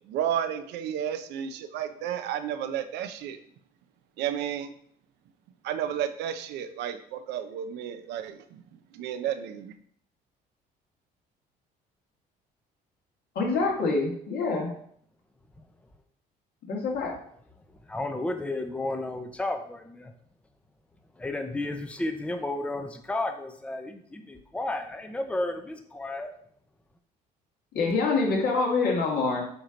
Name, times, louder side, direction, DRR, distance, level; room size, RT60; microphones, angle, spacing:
voice 1, 0.1-3.4 4.2-4.7 5.6-8.6 8.9-9.7, right 9 dB, 85° right, 9 dB, 0.6 m, -32 dB
voice 2, 13.4-14.7 16.7-17.1 27.7-29.4, left 3 dB, 65° left, -1 dB, 2.0 m, -25 dB
voice 3, 17.9-20.1 21.2-26.3, left 2 dB, 5° left, 6 dB, 0.6 m, -32 dB
7.9 x 3.0 x 5.1 m, 0.64 s
cardioid pair, 110°, 17 cm